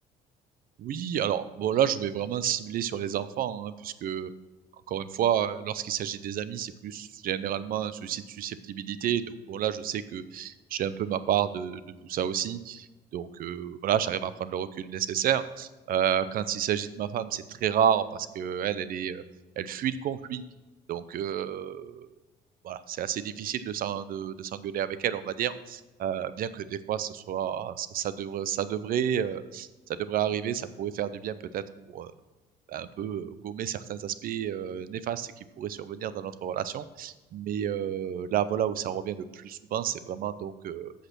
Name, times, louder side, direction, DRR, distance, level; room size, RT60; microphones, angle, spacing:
voice 1, 0.8-4.3 4.9-12.9 13.1-19.2 19.6-20.4 20.9-22.1 22.6-31.6 31.9-32.1 32.7-35.3 35.6-40.9, right 9 dB, 60° right, 14 dB, 0.5 m, -30 dB
7.9 x 6.5 x 6.0 m, 1.1 s
cardioid pair, 110°, 17 cm